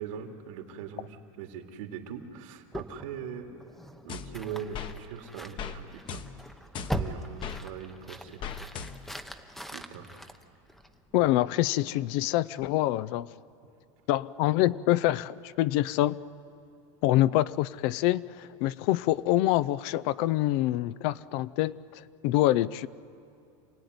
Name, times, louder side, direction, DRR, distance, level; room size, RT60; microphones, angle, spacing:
voice 1, 0.0-3.6 4.0-6.2 6.9-8.4 9.7-10.2, right 8 dB, 75° right, 3 dB, 2.8 m, -41 dB
sound 1, 2.7-11.2, equal, ahead, 0.9 m, -40 dB
sound 2, 4.1-4.9 5.6-5.8 6.1-7.6 8.4-9.2, left 7 dB, 30° left, 1.1 m, -39 dB
voice 2, 11.1-13.3 14.1-16.2 17.0-22.9, left 15 dB, 50° left, 18 dB, 0.6 m, -26 dB
28.0 x 18.0 x 9.5 m, 2.5 s
supercardioid pair, 155°, 17 cm